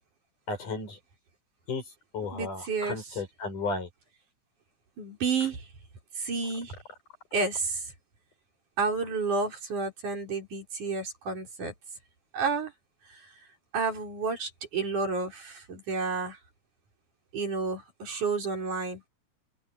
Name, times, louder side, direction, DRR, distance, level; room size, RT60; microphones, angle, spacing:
voice 1, 0.5-1.0 1.7-3.9, left 3 dB, 85° left, 8.4 m, -34 dB
voice 2, 2.3-3.0 5.0-5.7 6.2-6.7 7.3-7.9 8.8-11.7 12.3-12.7 13.1-13.2 13.7-16.4 17.3-19.0, right 4 dB, 75° right, 6.9 m, -30 dB
open air
omnidirectional pair, 3.5 m